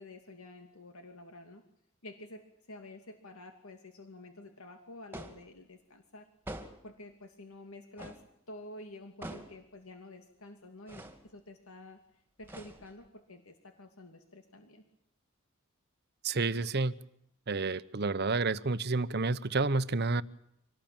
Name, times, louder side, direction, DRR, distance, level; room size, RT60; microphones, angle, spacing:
voice 1, 0.0-1.6 2.0-6.3 6.8-8.2 8.5-12.0 12.4-14.8, left 2 dB, 80° left, 6 dB, 2.6 m, -50 dB
sound 1, 5.1-5.5 6.5-6.9 8.0-8.3 9.2-9.6 10.9-11.2 12.4-13.1, right 1 dB, 10° right, 2.4 m, -45 dB
voice 2, 16.2-16.9 17.5-20.2, right 3 dB, 50° right, 15 dB, 0.9 m, -30 dB
25.5 x 19.0 x 8.9 m, 0.76 s
head